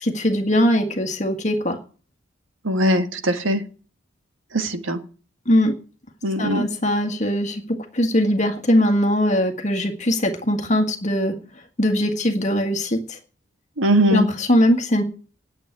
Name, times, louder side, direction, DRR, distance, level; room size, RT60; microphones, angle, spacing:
voice 1, 0.0-1.8 5.5-5.7 6.4-11.4 11.8-13.0 14.1-15.0, equal, 35° left, 4 dB, 1.8 m, -20 dB
voice 2, 2.6-3.6 4.5-5.0 6.2-6.7 13.8-14.3, equal, 80° right, 7 dB, 1.7 m, -20 dB
10.0 x 7.5 x 9.6 m, 0.38 s
head